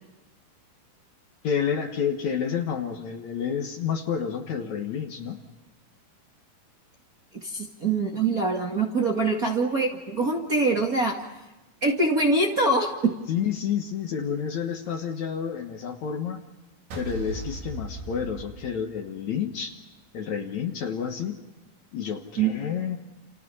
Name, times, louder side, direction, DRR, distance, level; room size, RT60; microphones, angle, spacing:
voice 1, 1.4-5.4 13.3-16.4 17.0-19.7 20.1-21.4 21.9-23.0, left 7 dB, 60° left, 5 dB, 2.4 m, -29 dB
voice 2, 7.4-11.2 11.8-13.1 22.4-22.6, right 3 dB, 30° right, 0 dB, 1.8 m, -24 dB
sound 1, 16.9-19.2, right 2 dB, 85° right, 5.6 m, -37 dB
29.5 x 29.5 x 5.6 m, 1.1 s
omnidirectional pair, 4.3 m